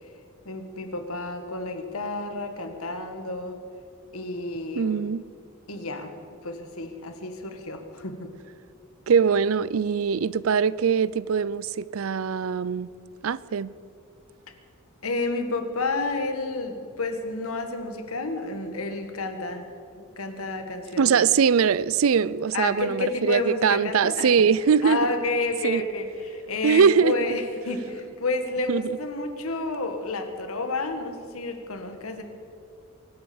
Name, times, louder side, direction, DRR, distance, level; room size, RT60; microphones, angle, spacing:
voice 1, 0.5-3.6 4.1-5.1 5.7-6.1 6.4-8.3 15.0-21.2 22.5-24.3 24.8-32.2, left 3 dB, 90° left, 1.8 m, -30 dB
voice 2, 4.8-5.2 9.1-12.9 13.2-13.7 21.0-25.0 25.6-25.8 26.6-27.1 28.7-28.9, right 6 dB, 70° right, 0.4 m, -22 dB
24.0 x 8.2 x 7.2 m
head